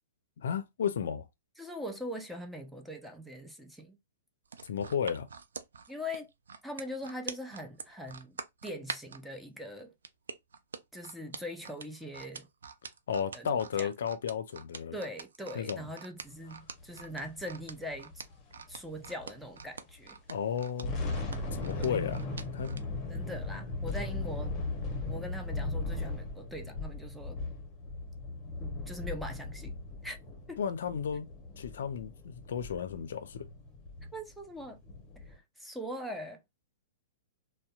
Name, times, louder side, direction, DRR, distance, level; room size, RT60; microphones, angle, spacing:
voice 1, 0.4-1.2 4.7-5.3 13.1-15.0 15.5-15.9 20.3-20.9 21.5-22.2 22.5-22.8 30.6-31.3 31.6-33.5, left 7 dB, 70° left, 0.4 m, -33 dB
voice 2, 1.6-4.0 5.9-6.3 6.6-8.4 8.6-9.9 10.9-12.5 13.3-13.5 13.8-13.9 14.9-18.1 18.7-20.2 21.8-22.0 23.1-24.6 25.1-27.4 28.6-30.2 30.5-30.6 34.1-34.8 35.3-36.4, equal, ahead, 0.4 m, -41 dB
sound 1, 4.5-9.2 10.0-22.8 23.3-23.4, right 5 dB, 80° right, 0.3 m, -44 dB
sound 2, 16.8-19.6 19.9-20.0 20.5-35.4, left 3 dB, 25° left, 0.8 m, -38 dB
2.6 x 2.1 x 2.3 m
hypercardioid pair, 120°, 0 cm